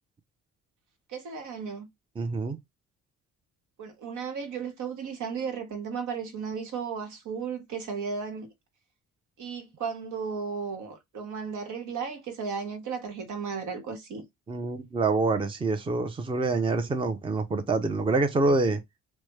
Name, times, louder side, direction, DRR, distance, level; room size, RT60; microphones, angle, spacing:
voice 1, 1.1-1.9 3.8-8.5 9.4-14.2, right 6 dB, 75° right, 1.1 m, -35 dB
voice 2, 2.2-2.6 14.5-18.8, right 3 dB, 15° right, 0.5 m, -26 dB
3.1 x 2.1 x 3.1 m
cardioid pair, 90°, 30 cm